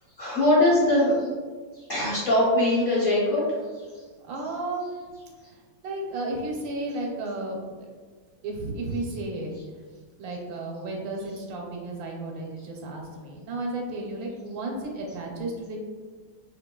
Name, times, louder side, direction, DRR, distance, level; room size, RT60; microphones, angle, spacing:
voice 1, 0.2-1.3 1.7-3.8, left 1 dB, 40° left, -10 dB, 0.8 m, -22 dB
voice 2, 4.2-5.1 5.4-7.9 8.4-9.5 10.2-15.8, right 2 dB, 80° right, 0 dB, 1.3 m, -33 dB
5.1 x 2.6 x 2.2 m, 1.5 s
omnidirectional pair, 2.1 m